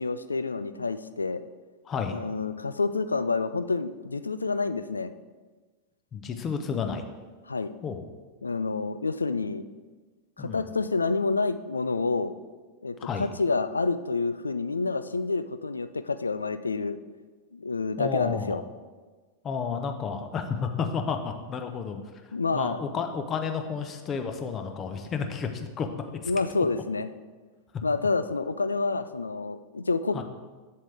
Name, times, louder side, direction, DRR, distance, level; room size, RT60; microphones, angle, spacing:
voice 1, 0.0-1.4 2.1-5.1 7.5-7.7 8.4-9.6 10.4-12.3 12.8-17.0 17.5-18.6 22.3-22.8 26.3-27.1 27.8-30.2, left 3 dB, 75° left, 12 dB, 0.3 m, -28 dB
voice 2, 1.9-2.2 6.1-7.0 7.8-8.0 10.4-10.6 13.0-13.3 18.0-18.6 19.4-22.0 22.5-25.9 26.2-26.3 30.1-30.2, left 6 dB, 25° left, 6 dB, 0.8 m, -31 dB
7.6 x 7.4 x 3.4 m, 1.4 s
figure-of-eight pair, 90°, 0 cm